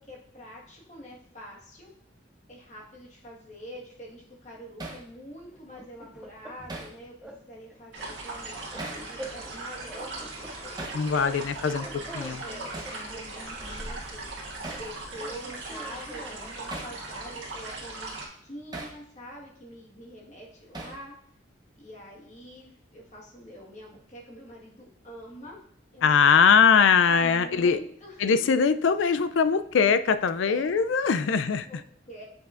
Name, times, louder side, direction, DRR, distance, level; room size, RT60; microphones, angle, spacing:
voice 1, 0.0-1.9 2.5-11.0 11.6-11.7 12.4-12.7 13.1-14.3 14.8-18.1 18.4-21.1 21.8-25.6 25.9-28.3 30.5-30.7 31.6-32.2, equal, 35° left, -3 dB, 1.5 m, -45 dB
Hammer, 4.8-5.1 6.7-7.0 8.8-9.1 10.8-11.0 12.7-13.0 14.6-14.9 16.7-17.0 18.7-19.0 20.7-21.1, right 2 dB, 20° right, 0.8 m, -38 dB
sound 1, 5.5-6.9 7.2-7.4 7.7-9.6 9.9-11.5 11.7-13.9 14.7-16.7, right 1 dB, 5° right, 0.4 m, -45 dB
sound 2, 7.9-18.3, right 2 dB, 70° right, 1.7 m, -39 dB
voice 2, 10.9-11.9 12.1-12.4 26.0-27.8 28.2-31.7, left 6 dB, 75° left, 13 dB, 0.4 m, -21 dB
7.7 x 5.8 x 2.5 m, 0.65 s
head